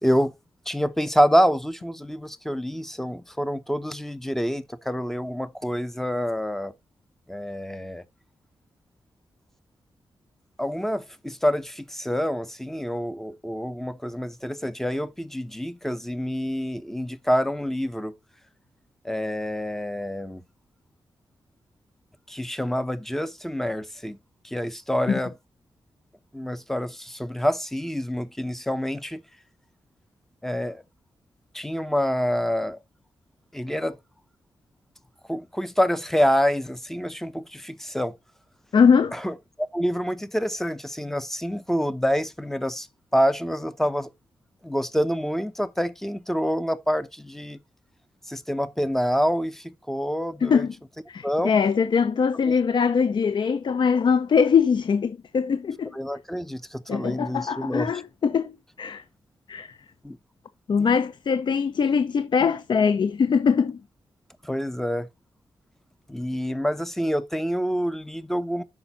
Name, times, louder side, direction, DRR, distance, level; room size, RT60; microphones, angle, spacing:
voice 1, 0.0-0.3 0.7-6.7 7.3-8.0 10.6-18.1 19.0-20.4 22.3-24.2 24.4-25.3 26.3-29.2 30.4-30.8 31.5-32.8 33.5-34.0 35.3-38.1 39.1-42.9 43.1-44.1 44.6-47.6 48.3-50.7 51.2-51.5 52.5-52.6 55.9-57.9 60.0-60.2 64.4-65.1 66.1-68.6, equal, 5° left, 0.7 m, -27 dB
voice 2, 38.7-39.1 50.4-50.7 51.1-55.9 56.9-59.0 59.5-59.8 60.7-63.8, left 6 dB, 55° left, 0.7 m, -22 dB
8.7 x 6.0 x 4.0 m
wide cardioid pair, 140°, 10 cm